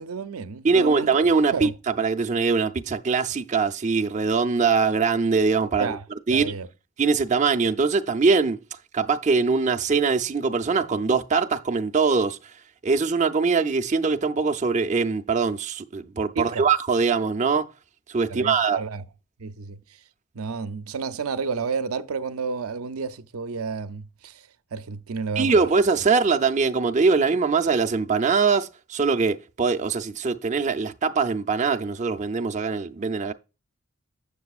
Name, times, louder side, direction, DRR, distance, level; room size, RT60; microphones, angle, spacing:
voice 1, 0.0-1.1 1.5-1.7 5.8-6.0 6.3-6.7 16.4-16.6 18.3-19.0 19.4-19.8 20.3-24.4 24.7-25.7, right 5 dB, 85° right, 0.5 m, -31 dB
voice 2, 0.6-5.9 6.3-6.5 7.0-8.6 8.9-12.4 12.8-17.7 18.1-18.8 25.4-33.3, right 4 dB, 35° right, 0.5 m, -22 dB
7.6 x 6.8 x 2.4 m
head